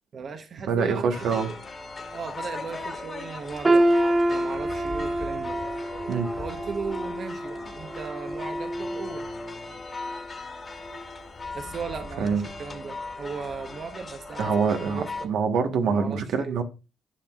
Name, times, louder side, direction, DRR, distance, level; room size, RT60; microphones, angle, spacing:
voice 1, 0.1-1.6 2.1-3.8 4.3-5.6 6.4-9.3 11.5-15.3 15.8-16.6, right 5 dB, 50° right, 0.9 m, -37 dB
voice 2, 0.7-1.5 6.1-6.3 12.2-12.4 14.4-16.6, right 5 dB, 80° right, 1.2 m, -25 dB
sound 1, 1.1-15.3, left 3 dB, 35° left, 1.6 m, -38 dB
sound 2, 3.6-9.6 10.0-10.2 11.0-11.1, right 1 dB, 20° right, 0.6 m, -27 dB
11.5 x 6.2 x 2.4 m
cardioid pair, 90°, 0 cm